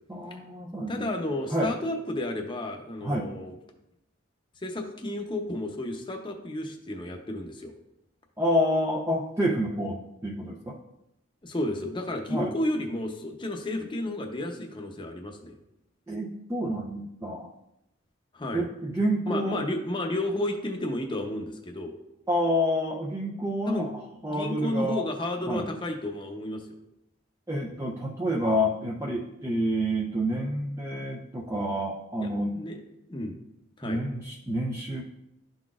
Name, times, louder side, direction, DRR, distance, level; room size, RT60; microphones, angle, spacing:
voice 1, 0.1-1.1 1.5-1.7 3.0-3.3 8.4-10.7 12.3-12.5 16.1-17.5 18.5-19.6 22.3-23.9 24.2-25.1 25.5-25.7 27.5-32.6 33.8-35.0, equal, 15° right, -3 dB, 0.5 m, -28 dB
voice 2, 0.9-3.5 4.6-7.7 11.4-15.5 18.3-18.6 19.3-21.9 23.7-23.9 24.3-26.7 32.2-32.3 32.5-32.8 33.1-33.3 33.8-34.0, left 1 dB, 25° left, 3 dB, 0.7 m, -32 dB
11.5 x 4.0 x 2.4 m, 0.85 s
head